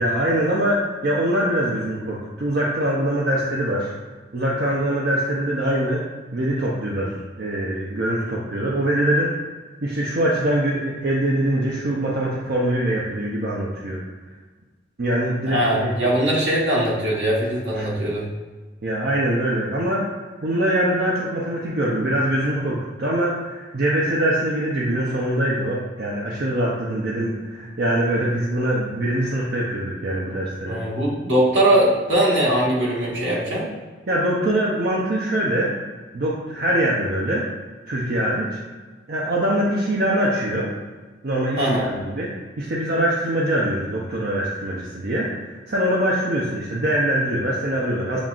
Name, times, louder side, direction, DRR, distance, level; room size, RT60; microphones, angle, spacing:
voice 1, 0.0-4.0 4.3-6.0 6.3-9.3 9.8-14.0 15.0-16.1 17.8-17.9 18.8-20.1 20.4-30.8 33.3-33.4 34.1-35.7 36.1-37.5 37.9-38.6 39.1-40.7 41.2-42.3 42.6-48.2, right 1 dB, 55° right, -4 dB, 0.5 m, -23 dB
voice 2, 15.5-18.3 30.7-33.7 41.6-41.8, right 1 dB, 75° right, -5 dB, 1.3 m, -21 dB
7.1 x 2.4 x 2.4 m, 1.4 s
head